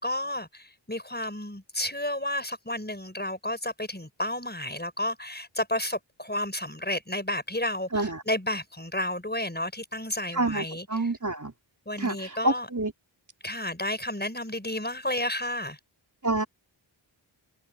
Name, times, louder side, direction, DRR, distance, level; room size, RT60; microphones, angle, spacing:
voice 1, 0.0-10.9 11.9-12.7 13.4-15.8, left 1 dB, 20° left, 5.4 m, -31 dB
voice 2, 7.9-8.2 10.3-11.5 12.0-12.9 16.2-16.4, right 2 dB, 40° right, 4.1 m, -28 dB
wide cardioid pair, 45°, 46 cm